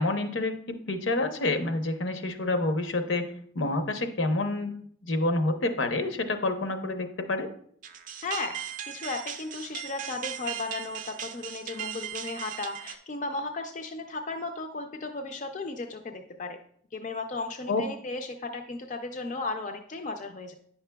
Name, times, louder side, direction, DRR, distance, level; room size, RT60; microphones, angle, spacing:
voice 1, 0.0-4.7 5.0-7.5 17.7-17.8, left 2 dB, 75° left, 6 dB, 0.7 m, -28 dB
sound 1, 7.8-13.0, right 10 dB, 40° right, 0.4 m, -38 dB
voice 2, 8.2-16.6 16.9-20.5, left 3 dB, 40° left, 5 dB, 0.4 m, -35 dB
9.5 x 5.8 x 2.2 m, 0.62 s
head